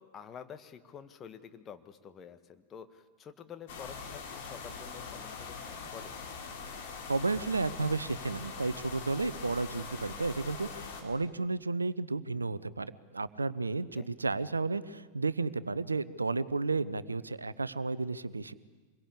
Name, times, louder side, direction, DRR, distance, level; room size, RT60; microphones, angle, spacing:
voice 1, 0.0-6.2 13.9-14.1, left 7 dB, 25° left, 9 dB, 1.5 m, -49 dB
sound 1, 3.7-11.0, left 5 dB, 50° left, 4.5 m, -43 dB
voice 2, 7.1-18.5, right 3 dB, 80° right, 17 dB, 0.7 m, -32 dB
26.0 x 22.0 x 8.5 m, 1.4 s
figure-of-eight pair, 90°, 0 cm